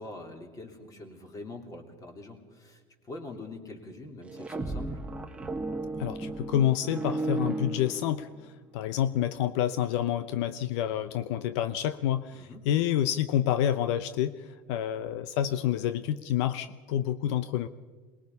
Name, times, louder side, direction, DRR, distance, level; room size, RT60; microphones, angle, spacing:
voice 1, 0.0-5.0 12.3-12.6, left 2 dB, 25° left, 3 dB, 3.3 m, -44 dB
sound 1, 4.2-8.5, right 2 dB, 10° right, 1.2 m, -34 dB
voice 2, 6.0-17.7, left 11 dB, 75° left, 12 dB, 0.8 m, -28 dB
23.5 x 20.5 x 5.5 m, 1.5 s
supercardioid pair, 140°, 15 cm